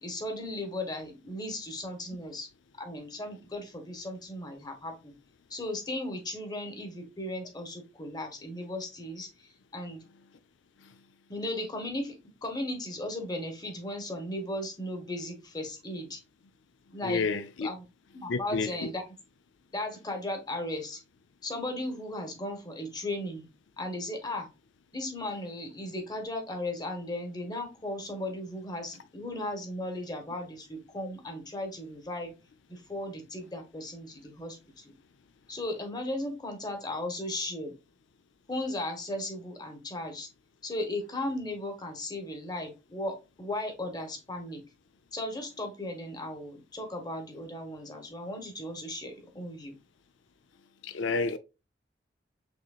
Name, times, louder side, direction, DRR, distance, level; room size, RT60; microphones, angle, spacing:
voice 1, 0.0-2.5 2.8-5.1 5.5-10.0 11.3-12.2 12.4-16.2 16.9-17.3 17.6-17.8 18.1-19.0 19.7-21.0 21.4-23.5 23.8-24.5 24.9-32.3 32.7-34.9 35.5-37.7 38.5-40.3 40.6-44.6 45.1-49.8, left 1 dB, 20° left, 1.1 m, -36 dB
voice 2, 17.0-17.7 18.3-18.9 50.8-51.4, left 4 dB, 80° left, 0.5 m, -30 dB
6.4 x 3.0 x 2.4 m
head